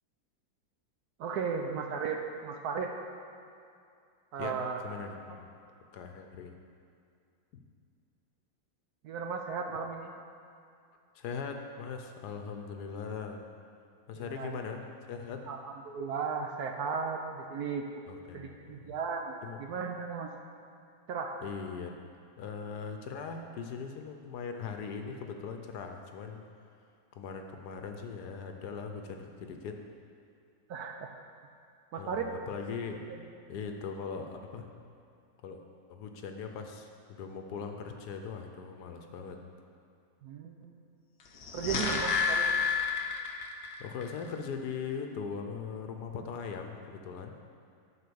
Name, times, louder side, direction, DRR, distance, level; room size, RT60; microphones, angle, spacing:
voice 1, 1.2-2.9 4.3-4.8 9.0-10.1 14.2-14.6 15.5-17.9 18.3-20.3 21.1-21.4 30.7-31.1 31.9-32.3 33.1-33.3 40.2-41.0 41.5-42.5, right 5 dB, 70° right, 3 dB, 1.0 m, -35 dB
voice 2, 4.8-5.5 5.9-6.5 7.5-7.6 11.1-13.4 14.1-14.8 15.1-15.5 18.1-18.9 19.4-19.6 21.4-22.1 22.4-26.5 27.2-29.8 32.0-33.0 33.5-34.7 35.4-35.6 35.9-39.4 43.8-47.4, left 5 dB, 70° left, 4 dB, 1.1 m, -40 dB
sound 1, 41.3-43.7 44.0-44.1, left 5 dB, 55° left, 0.7 m, -29 dB
11.0 x 4.3 x 6.9 m, 2.4 s
omnidirectional pair, 2.0 m